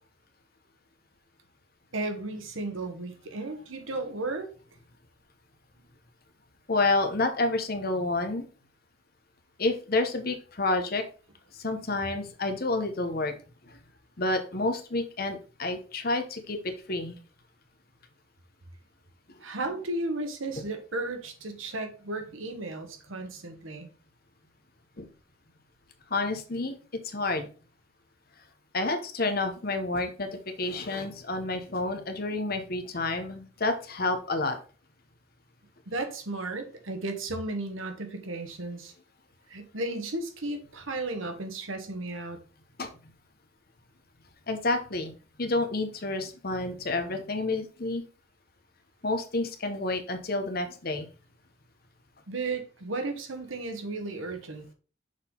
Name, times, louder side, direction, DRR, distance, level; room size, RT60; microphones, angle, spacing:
voice 1, 1.9-4.5 19.4-23.9 35.9-38.9 39.5-42.4 52.3-54.6, right 2 dB, 85° right, 6 dB, 1.2 m, -34 dB
voice 2, 6.7-8.4 9.6-11.0 11.6-13.3 14.2-17.2 25.0-25.1 26.1-26.7 27.1-27.5 28.7-34.6 42.8-42.9 44.5-45.1 45.4-48.0 49.0-51.1, left 2 dB, 50° left, 6 dB, 1.0 m, -29 dB
6.5 x 3.9 x 3.8 m, 0.37 s
head